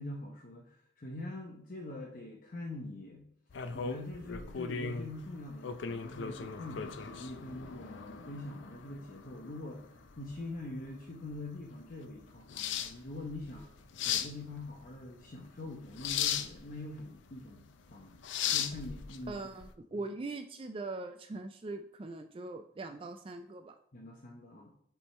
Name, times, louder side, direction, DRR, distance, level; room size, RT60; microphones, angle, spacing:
voice 1, 0.0-3.3 3.7-9.8 10.2-13.7 14.0-18.2 18.5-19.4 23.9-24.7, left 2 dB, 45° left, -1 dB, 0.8 m, -44 dB
sound 1, 3.5-19.7, left 7 dB, 80° left, 0.5 m, -38 dB
voice 2, 19.3-23.8, right 3 dB, 30° right, 7 dB, 0.3 m, -41 dB
7.1 x 3.5 x 4.3 m, 0.68 s
head